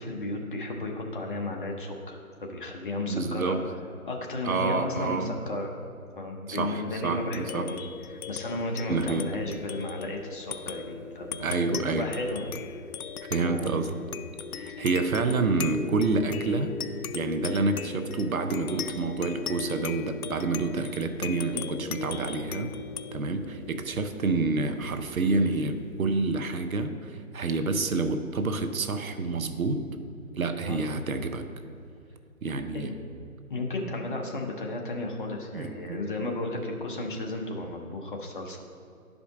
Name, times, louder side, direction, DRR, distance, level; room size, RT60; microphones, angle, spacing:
voice 1, 0.0-3.6 4.0-5.7 6.2-12.8 13.4-13.8 14.7-14.8 30.6-30.8 32.7-32.9 33.5-38.6, left 2 dB, 35° left, 1 dB, 0.9 m, -34 dB
voice 2, 3.1-3.6 4.4-5.3 6.5-7.7 8.9-9.3 11.4-12.1 13.3-13.9 14.5-16.7 17.1-22.8 23.1-29.8 30.3-31.5 32.4-32.9 35.5-36.0, right 3 dB, 70° right, 8 dB, 0.9 m, -28 dB
sound 1, 7.1-26.0, left 6 dB, 80° left, 0.6 m, -39 dB
11.5 x 5.1 x 3.6 m, 2.5 s
figure-of-eight pair, 150°, 43 cm